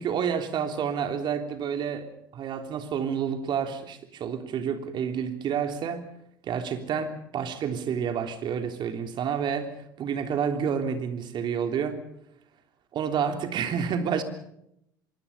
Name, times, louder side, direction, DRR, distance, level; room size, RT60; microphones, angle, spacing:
voice 1, 0.0-2.1 2.3-6.1 6.4-9.7 10.0-12.0 12.9-14.2, right 7 dB, 40° right, 6 dB, 3.3 m, -29 dB
25.0 x 24.0 x 5.6 m, 0.76 s
figure-of-eight pair, 70°, 11 cm